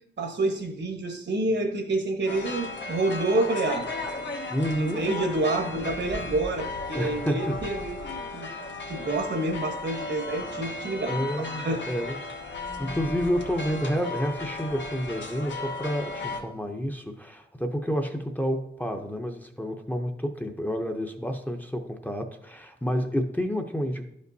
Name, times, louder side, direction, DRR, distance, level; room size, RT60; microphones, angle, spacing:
voice 1, 0.2-3.9 4.8-8.0 8.3-8.5 8.9-11.3 11.5-11.8, right 2 dB, 70° right, 5 dB, 1.1 m, -28 dB
sound 1, 2.3-16.4, left 3 dB, 80° left, 1.0 m, -35 dB
voice 2, 4.5-5.0 6.9-7.5 11.1-12.1 12.4-24.0, equal, 10° left, 4 dB, 0.6 m, -29 dB
11.5 x 5.2 x 2.7 m, 0.74 s
wide cardioid pair, 120°, 19 cm